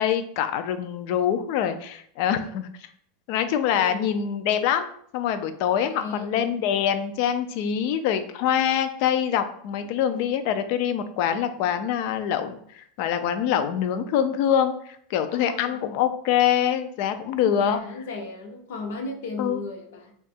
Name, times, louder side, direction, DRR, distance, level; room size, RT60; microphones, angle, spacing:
voice 1, 0.0-2.7 3.3-4.9 5.1-17.8 19.4-19.6, left 9 dB, 45° left, 0.3 m, -24 dB
voice 2, 3.6-4.1 5.9-6.5 10.1-10.3 15.3-16.0 17.4-20.2, left 3 dB, 70° left, 0.8 m, -36 dB
3.6 x 2.3 x 4.1 m
supercardioid pair, 175°, 0 cm